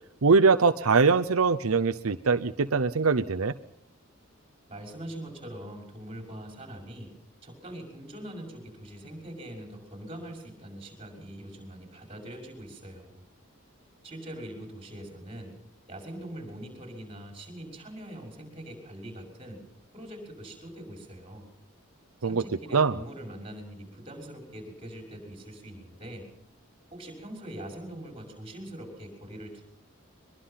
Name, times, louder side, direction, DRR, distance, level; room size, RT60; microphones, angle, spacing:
voice 1, 0.2-3.5 22.2-22.4 22.7-22.9, right 4 dB, 90° right, 8 dB, 0.8 m, -22 dB
voice 2, 4.7-7.1 7.4-13.2 14.0-15.5 15.9-19.6 19.9-21.5 22.2-26.3 26.9-29.7, right 1 dB, 25° right, 3 dB, 6.2 m, -42 dB
23.5 x 22.0 x 5.8 m, 0.73 s
head